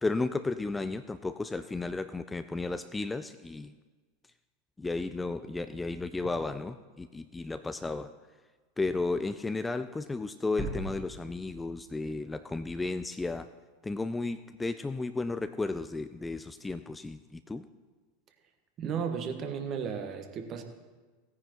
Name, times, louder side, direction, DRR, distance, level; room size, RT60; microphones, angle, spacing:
voice 1, 0.0-3.7 4.8-8.1 8.8-13.5 13.8-17.6, left 3 dB, 10° left, 11 dB, 0.4 m, -33 dB
sound 1, 10.6-12.5, right 1 dB, 15° right, 2.1 m, -40 dB
voice 2, 18.8-20.6, right 7 dB, 35° right, 6 dB, 1.3 m, -34 dB
17.0 x 9.6 x 3.0 m, 1.3 s
figure-of-eight pair, 85°, 0 cm